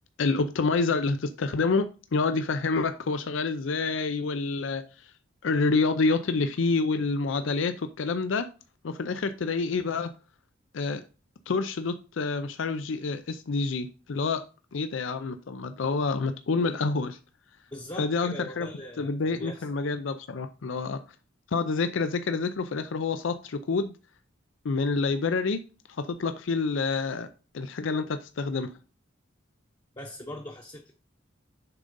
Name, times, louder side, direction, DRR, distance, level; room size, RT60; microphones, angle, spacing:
voice 1, 0.2-1.9 2.1-5.1 5.4-8.5 8.8-10.1 10.7-11.0 11.5-14.4 14.7-17.2 18.0-18.7 19.0-21.0 21.5-23.9 24.6-25.6 25.9-27.3 27.5-28.7, left 4 dB, 75° left, 0.5 m, -28 dB
voice 2, 17.7-19.6 30.0-30.9, equal, 20° left, 0.8 m, -41 dB
6.9 x 3.7 x 5.3 m
head